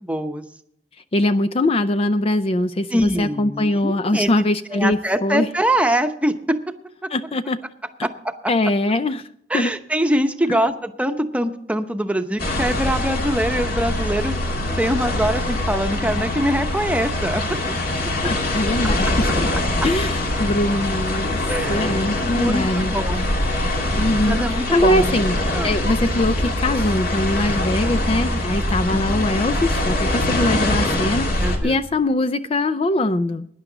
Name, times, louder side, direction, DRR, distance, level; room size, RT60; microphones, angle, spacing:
voice 1, 0.0-0.4 2.9-4.3 4.7-6.7 8.0-8.3 9.5-14.4 14.8-17.6 21.5-23.3 24.2-25.7 27.8-28.0 28.9-29.0 31.4-31.8, right 1 dB, 10° right, 7 dB, 0.9 m, -23 dB
voice 2, 1.1-5.5 7.1-7.6 8.5-9.3 9.5-9.7 10.5-10.6 18.2-19.5 19.8-21.4 21.7-22.9 24.0-25.4 25.6-33.5, left 1 dB, 35° left, 11 dB, 0.4 m, -22 dB
sound 1, 12.4-31.6, left 1 dB, 55° left, 2.5 m, -23 dB
17.5 x 10.5 x 3.9 m, 0.69 s
head